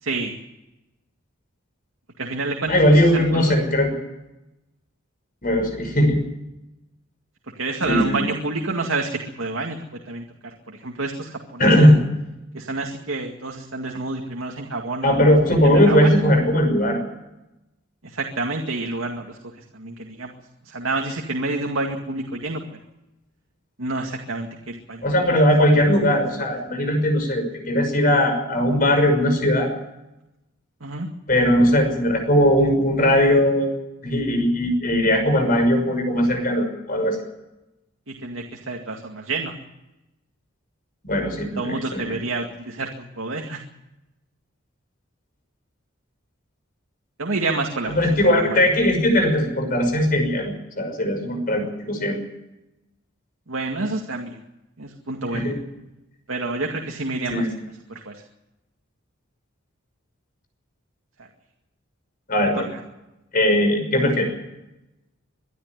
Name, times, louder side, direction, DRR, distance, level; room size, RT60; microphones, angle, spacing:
voice 1, 0.0-0.4 2.2-3.5 7.6-9.8 10.1-11.9 12.5-16.1 18.0-19.4 19.7-20.3 20.6-22.6 23.8-25.4 30.8-31.1 38.1-39.5 41.6-43.6 47.2-47.9 48.3-48.6 53.5-54.4 54.8-55.5 56.3-57.5 57.9-58.2 62.7-62.8, right 2 dB, 80° right, 2 dB, 2.1 m, -28 dB
voice 2, 2.7-3.9 5.4-6.2 7.9-8.3 11.6-12.0 15.0-17.1 25.0-29.7 31.3-33.7 34.0-37.2 41.0-42.2 47.9-52.2 55.3-55.6 57.3-57.5 62.3-62.7 63.3-64.3, equal, 45° left, 5 dB, 6.0 m, -19 dB
23.0 x 12.0 x 9.5 m, 0.95 s
head